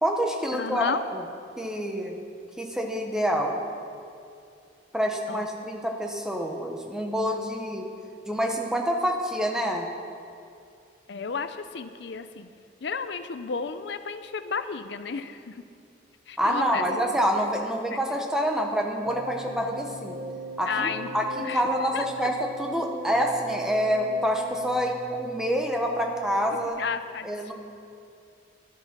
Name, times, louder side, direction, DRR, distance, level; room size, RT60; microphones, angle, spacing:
voice 1, 0.0-1.2 1.6-2.2 2.6-3.6 4.9-7.8 8.3-9.9 16.4-20.2 20.6-26.8 27.2-27.5, equal, 5° right, 1 dB, 1.1 m, -27 dB
voice 2, 0.5-1.0 5.3-5.5 11.1-12.5 12.8-15.6 16.3-16.8 17.9-18.0 20.7-21.1 21.4-21.6 21.9-22.1 26.8-27.3, left 5 dB, 70° left, 11 dB, 0.5 m, -32 dB
sound 1, 19.0-26.7, right 1 dB, 45° right, 0.8 m, -39 dB
12.0 x 10.5 x 6.0 m, 2.4 s
head